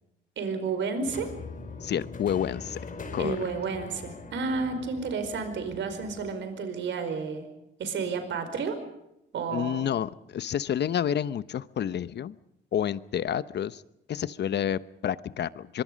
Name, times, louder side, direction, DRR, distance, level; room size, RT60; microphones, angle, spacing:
voice 1, 0.4-1.3 3.2-7.5 7.8-8.8 9.3-9.9, right 5 dB, 70° right, 8 dB, 4.9 m, -31 dB
sound 1, 1.1-6.3, left 4 dB, 40° left, 5.1 m, -42 dB
voice 2, 1.8-2.8 3.1-3.4 9.5-12.4 12.7-13.8 14.1-15.8, left 9 dB, 60° left, 16 dB, 0.9 m, -29 dB
24.5 x 23.5 x 5.3 m, 0.85 s
cardioid pair, 90°, 20 cm